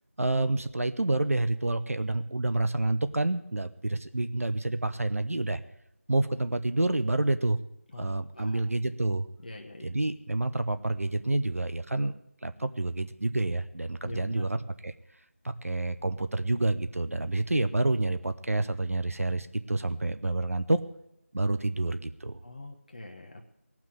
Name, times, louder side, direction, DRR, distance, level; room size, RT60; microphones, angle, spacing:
voice 1, 0.2-5.6 6.1-7.6 8.0-9.3 9.8-12.1 12.4-14.9 15.4-20.8 21.3-22.4, right 2 dB, 70° right, 11 dB, 0.8 m, -28 dB
voice 2, 7.9-8.6 9.4-9.9 14.0-14.4 22.4-23.5, left 1 dB, 35° left, 2 dB, 0.9 m, -42 dB
17.5 x 6.1 x 9.2 m, 0.80 s
figure-of-eight pair, 170°, 8 cm